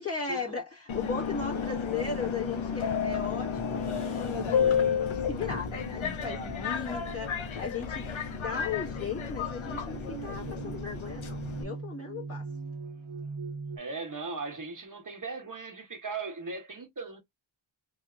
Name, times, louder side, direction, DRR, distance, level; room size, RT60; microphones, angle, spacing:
voice 1, 0.0-12.5, left 5 dB, 30° left, 1.8 m, -37 dB
Subway metro underground, 0.9-11.6, left 7 dB, 75° left, 0.7 m, -32 dB
sound 1, 3.5-13.8, right 4 dB, 75° right, 0.8 m, -42 dB
voice 2, 13.8-17.2, right 3 dB, 40° right, 1.0 m, -38 dB
3.3 x 2.7 x 2.4 m
wide cardioid pair, 80°, 48 cm